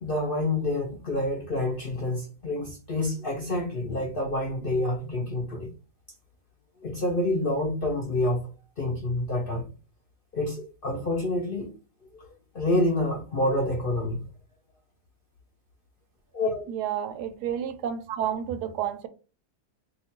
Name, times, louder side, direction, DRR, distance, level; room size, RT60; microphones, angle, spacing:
voice 1, 0.0-5.7 6.8-8.4 8.8-9.7 10.3-11.7 12.1-14.3 16.3-16.7, left 1 dB, 55° left, 0.6 m, -28 dB
voice 2, 16.7-19.1, right 9 dB, 85° right, 1.1 m, -30 dB
2.9 x 2.3 x 4.2 m
omnidirectional pair, 1.7 m